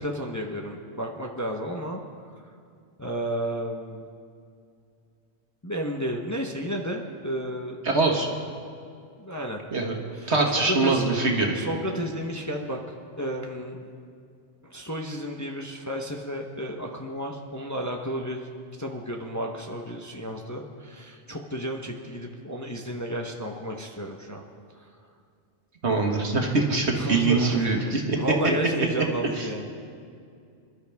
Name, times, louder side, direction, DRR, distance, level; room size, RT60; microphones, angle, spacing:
voice 1, 0.0-2.0 3.0-4.1 5.6-7.8 9.2-9.6 10.1-10.4 10.7-11.0 11.5-12.8 13.2-13.9 14.6-18.5 18.8-24.4 24.7-24.9 26.9-29.7, equal, 15° left, 1 dB, 0.9 m, -32 dB
voice 2, 7.8-8.3 9.7-9.9 10.3-11.6 25.8-28.2 29.4-29.5, right 3 dB, 65° right, 1 dB, 1.9 m, -23 dB
26.5 x 12.5 x 3.5 m, 2.3 s
omnidirectional pair, 1.2 m